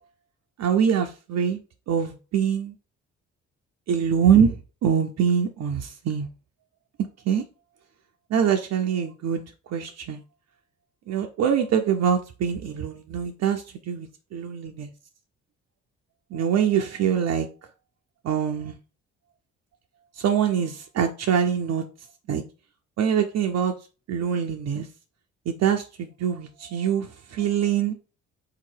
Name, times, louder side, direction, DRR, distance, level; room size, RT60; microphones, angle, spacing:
voice 1, 0.6-1.6 1.9-2.7 3.9-4.5 4.8-6.3 7.3-7.4 8.3-9.4 9.7-10.2 11.1-14.9 16.3-17.5 18.2-18.7 20.2-21.8 22.3-22.4 23.0-23.7 24.1-24.9 25.5-27.9, right 8 dB, 55° right, 0.6 m, -24 dB
3.6 x 2.9 x 4.5 m
supercardioid pair, 60°, 31 cm